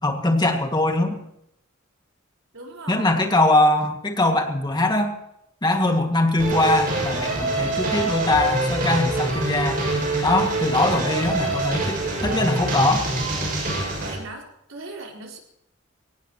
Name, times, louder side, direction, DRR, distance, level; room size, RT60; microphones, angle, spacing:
voice 1, 0.0-1.2 2.9-5.1 5.6-9.8 10.2-13.0, left 2 dB, 20° left, 3 dB, 2.1 m, -21 dB
voice 2, 2.5-3.3 14.0-15.4, right 2 dB, 85° right, 0 dB, 4.3 m, -38 dB
sound 1, 6.4-14.1, right 2 dB, 45° right, 6.8 m, -25 dB
23.5 x 18.0 x 3.1 m, 0.79 s
head